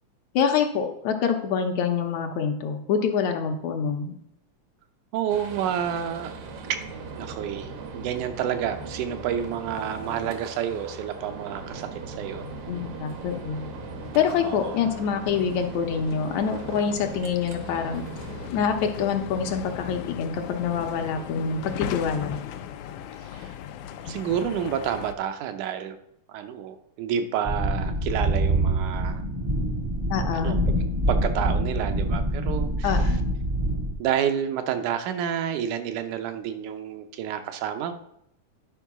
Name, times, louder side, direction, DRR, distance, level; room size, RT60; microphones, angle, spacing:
voice 1, 0.4-4.1 12.7-13.7 14.1-18.0 18.5-22.4 30.1-30.6 32.8-33.3, left 6 dB, 75° left, 5 dB, 2.1 m, -26 dB
voice 2, 5.1-6.3 6.7-6.8 7.1-12.4 14.4-14.8 23.3-23.5 24.1-26.0 26.3-29.2 30.3-30.6 31.1-33.0 34.0-37.9, right 9 dB, 85° right, 8 dB, 2.2 m, -29 dB
sound 1, 5.3-25.1, left 7 dB, 90° left, 2.1 m, -39 dB
sound 2, 5.3-18.5, right 6 dB, 65° right, 1.4 m, -40 dB
sound 3, 27.4-33.9, right 1 dB, 25° right, 0.6 m, -25 dB
10.0 x 4.6 x 5.9 m, 0.75 s
omnidirectional pair, 3.5 m